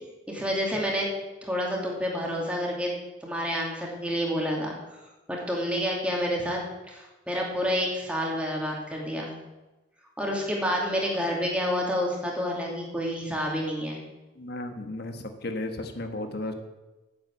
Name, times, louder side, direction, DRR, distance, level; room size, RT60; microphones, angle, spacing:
voice 1, 0.3-1.1 1.4-2.9 3.2-4.8 5.3-6.6 6.9-9.3 10.2-14.0, equal, 5° right, -2 dB, 2.6 m, -29 dB
voice 2, 14.4-16.5, left 2 dB, 60° left, 6 dB, 1.4 m, -34 dB
8.9 x 7.6 x 8.3 m, 1.1 s
head